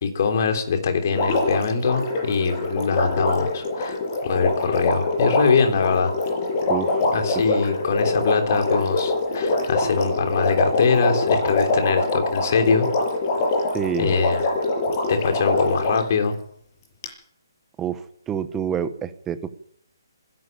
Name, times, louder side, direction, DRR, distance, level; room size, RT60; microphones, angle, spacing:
voice 1, 0.0-6.1 7.1-12.9 14.0-14.4 15.1-16.3, left 5 dB, 40° left, 6 dB, 3.4 m, -23 dB
Water, 1.1-16.1 17.0-17.1, left 2 dB, 25° left, 7.0 m, -24 dB
voice 2, 6.7-7.0 13.7-14.1 17.8-19.5, right 8 dB, 10° right, 12 dB, 1.0 m, -27 dB
25.0 x 12.0 x 9.0 m, 0.69 s
hypercardioid pair, 170°, 2 cm